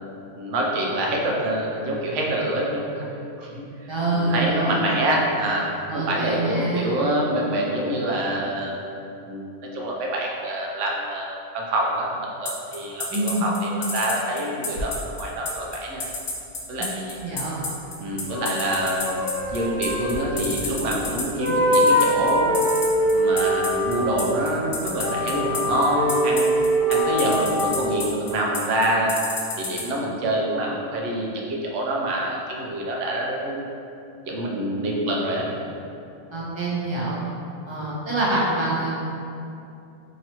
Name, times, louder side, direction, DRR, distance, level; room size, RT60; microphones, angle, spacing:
voice 1, 0.4-3.0 3.4-5.7 5.9-8.8 9.2-16.1 16.7-17.2 18.0-19.2 19.5-22.5 23.1-26.5 26.9-29.1 29.6-33.6 34.3-35.5, right 1 dB, 80° right, -2 dB, 1.0 m, -26 dB
voice 2, 3.9-4.9 5.9-7.0 13.1-13.5 16.8-16.9 17.2-17.5 36.3-37.2 37.6-38.9, right 2 dB, 30° right, -7 dB, 0.7 m, -25 dB
sound 1, 12.5-29.8, left 3 dB, 70° left, 1.0 m, -29 dB
sound 2, 14.8-14.9 18.3-21.1 21.4-24.3 24.9-27.9, equal, 50° left, 1.0 m, -23 dB
3.0 x 2.7 x 4.3 m, 2.7 s
omnidirectional pair, 1.2 m